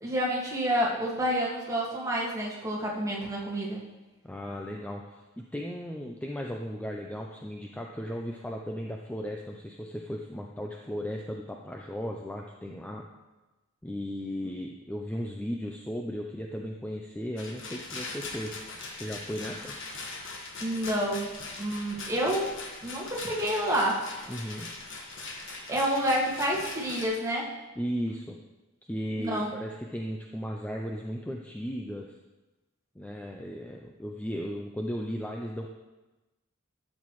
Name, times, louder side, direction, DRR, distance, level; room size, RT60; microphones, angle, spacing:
voice 1, 0.0-3.8 20.6-21.3 21.6-22.5 22.8-24.0 25.7-27.5 29.2-29.5, equal, 15° right, -5 dB, 1.9 m, -28 dB
voice 2, 4.2-13.0 13.8-18.5 18.9-19.7 24.3-24.7 27.8-28.4 28.8-32.1 33.0-35.7, equal, 5° left, 0 dB, 0.5 m, -36 dB
Rattle, 17.4-27.1, left 3 dB, 60° left, 1.4 m, -41 dB
12.5 x 7.5 x 3.1 m, 1.1 s
head